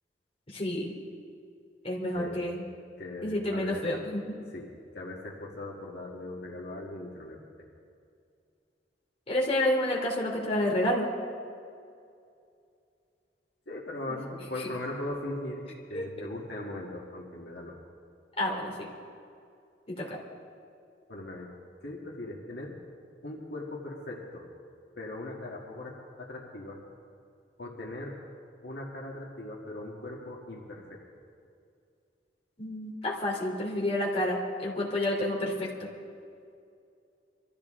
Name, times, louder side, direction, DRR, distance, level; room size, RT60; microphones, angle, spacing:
voice 1, 0.5-0.9 1.8-2.6 3.2-4.4 9.3-11.1 14.1-14.2 15.9-16.1 18.4-18.9 19.9-20.2 32.6-35.7, left 1 dB, 35° left, -3 dB, 2.7 m, -29 dB
voice 2, 2.1-2.5 3.0-3.8 4.5-7.5 13.7-17.7 21.1-21.5 21.8-22.8 23.2-24.5 25.0-26.8 27.6-28.1 28.6-31.0, left 1 dB, 70° left, -2 dB, 1.9 m, -39 dB
24.0 x 13.5 x 3.8 m, 2.4 s
head